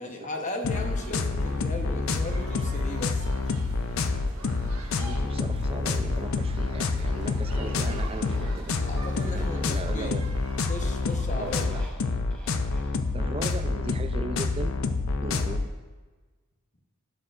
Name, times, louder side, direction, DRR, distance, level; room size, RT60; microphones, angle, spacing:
voice 1, 0.0-3.3 6.0-6.2 7.6-7.7 8.1-8.3 8.8-10.2 10.7-11.7, left 1 dB, 35° left, 3 dB, 0.9 m, -37 dB
sound 1, 0.6-15.7, left 3 dB, 65° left, 0.5 m, -28 dB
sound 2, 0.7-11.6, right 2 dB, 80° right, 1.4 m, -44 dB
voice 2, 1.9-2.2 4.9-8.8 9.2-10.2 11.3-11.9 13.1-14.7 15.2-15.7, right 3 dB, 25° right, 8 dB, 0.5 m, -38 dB
Motorcycle, 2.4-15.1, equal, 5° left, 1.1 m, -49 dB
12.0 x 7.4 x 2.5 m, 1.3 s
head